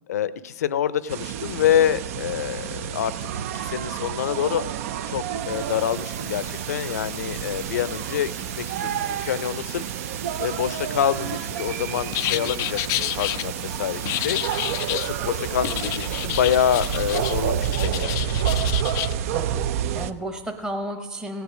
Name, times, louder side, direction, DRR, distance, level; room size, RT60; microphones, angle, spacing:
voice 1, 0.1-4.6 5.1-9.9 10.4-14.4 14.9-18.3, left 10 dB, 85° left, 17 dB, 0.6 m, -26 dB
sound 1, 1.1-20.1, right 9 dB, 65° right, 0.5 m, -29 dB
sound 2, 5.3-18.0, right 6 dB, 80° right, 2.1 m, -40 dB
sound 3, 12.1-13.4 14.1-15.1 15.6-17.4 17.7-19.1, left 18 dB, 40° left, 0.3 m, -29 dB
voice 2, 19.3-21.4, right 1 dB, 10° right, 4 dB, 0.9 m, -34 dB
16.5 x 8.3 x 6.1 m, 1.3 s
supercardioid pair, 135°, 8 cm